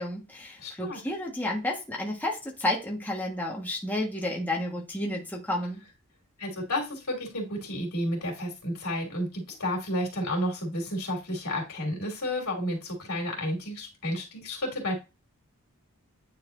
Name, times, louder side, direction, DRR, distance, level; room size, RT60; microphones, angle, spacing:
voice 1, 0.0-5.8, left 1 dB, 10° left, -2 dB, 1.4 m, -31 dB
voice 2, 0.6-1.0 6.4-14.9, left 1 dB, 90° left, -1 dB, 2.9 m, -31 dB
9.4 x 4.2 x 2.6 m, 0.28 s
head